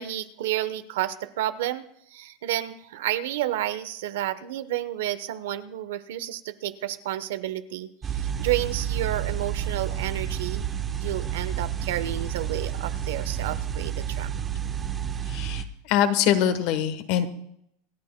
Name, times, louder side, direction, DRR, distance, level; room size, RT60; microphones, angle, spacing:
voice 1, 0.0-1.8 2.1-10.7 11.0-14.5, right 13 dB, 80° right, 12 dB, 0.9 m, -31 dB
sound 1, 8.0-15.6, right 9 dB, 15° right, 0.8 m, -30 dB
voice 2, 15.3-17.3, left 10 dB, 50° left, 10 dB, 1.1 m, -23 dB
27.5 x 11.5 x 2.2 m, 0.74 s
supercardioid pair, 170°, 0 cm